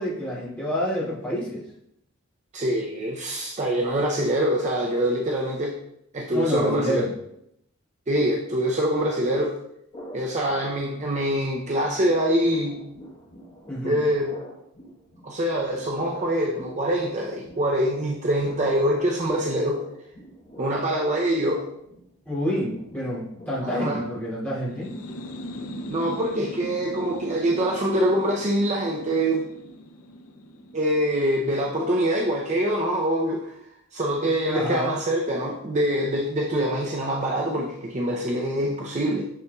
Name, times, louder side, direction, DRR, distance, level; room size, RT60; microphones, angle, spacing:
voice 1, 0.0-1.6 6.3-7.1 13.7-13.9 22.3-25.0 34.5-34.9, equal, 5° left, -9 dB, 2.4 m, -28 dB
voice 2, 2.5-5.8 6.1-7.0 8.1-9.5 10.1-12.8 13.8-14.3 15.2-19.8 20.6-21.6 23.6-24.0 25.9-29.4 30.7-33.5 33.9-39.3, right 1 dB, 35° right, 0 dB, 0.5 m, -24 dB
sound 1, 9.9-11.2 11.4-24.6, equal, 30° left, 1.1 m, -45 dB
sound 2, 24.7-32.2, left 1 dB, 80° left, 0.6 m, -40 dB
6.7 x 6.6 x 2.3 m, 0.77 s
head